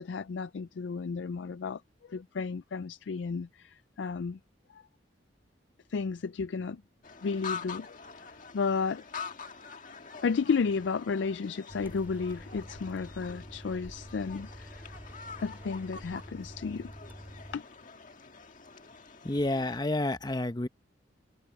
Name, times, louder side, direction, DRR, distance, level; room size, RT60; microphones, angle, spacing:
voice 1, 0.0-1.8 2.1-4.4 5.9-6.8 7.2-7.9 8.5-9.0 10.2-14.7 15.4-16.9 17.5-17.6, left 5 dB, 80° left, 0.4 m, -32 dB
sound 1, 7.0-19.8, left 5 dB, 45° left, 1.8 m, -45 dB
sound 2, 11.7-17.6, equal, 10° right, 2.3 m, -47 dB
voice 2, 19.2-20.7, left 1 dB, 25° left, 0.8 m, -29 dB
head